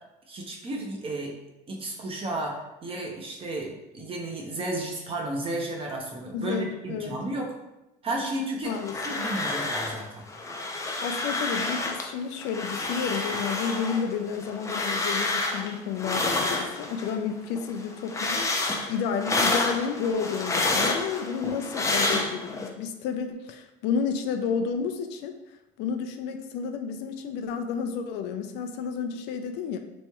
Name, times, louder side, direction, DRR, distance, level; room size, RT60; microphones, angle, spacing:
voice 1, 0.3-1.3 1.7-7.6 8.0-8.7 9.0-10.3, right 1 dB, 30° right, 0 dB, 0.8 m, -33 dB
voice 2, 6.3-7.1 8.6-9.2 11.0-18.5 18.9-25.4 25.8-29.8, left 6 dB, 75° left, 7 dB, 0.4 m, -31 dB
sound 1, 8.6-10.0 10.3-12.1 12.4-17.2 17.5-22.7, left 2 dB, 15° left, 0.5 m, -29 dB
3.4 x 3.1 x 2.9 m, 0.94 s
cardioid pair, 110°, 18 cm